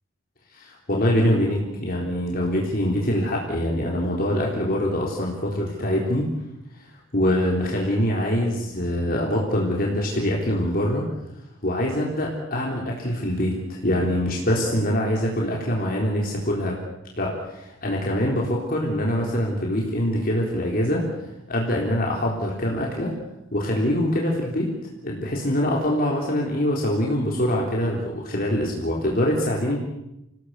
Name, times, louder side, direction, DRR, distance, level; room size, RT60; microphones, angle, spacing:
voice 1, 0.6-6.3 7.1-11.0 11.6-16.8 17.2-21.0 21.5-23.1 23.5-24.7 25.0-29.8, equal, 45° left, -2 dB, 4.0 m, -24 dB
28.0 x 17.5 x 8.2 m, 0.89 s
head